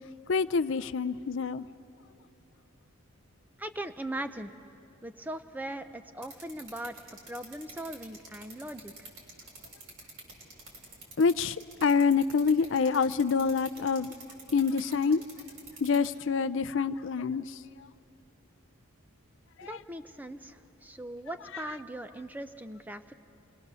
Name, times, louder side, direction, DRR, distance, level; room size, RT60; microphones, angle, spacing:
voice 1, 0.3-1.7 11.2-11.6 11.8-14.1 14.5-15.2 15.8-17.6 19.6-19.7, left 5 dB, 60° left, 0.5 m, -26 dB
voice 2, 3.6-4.6 5.0-7.0 7.3-9.1 19.6-23.1, right 1 dB, 10° right, 0.5 m, -40 dB
sound 1, 6.2-16.1, right 3 dB, 90° right, 6.3 m, -46 dB
27.0 x 21.5 x 6.9 m
head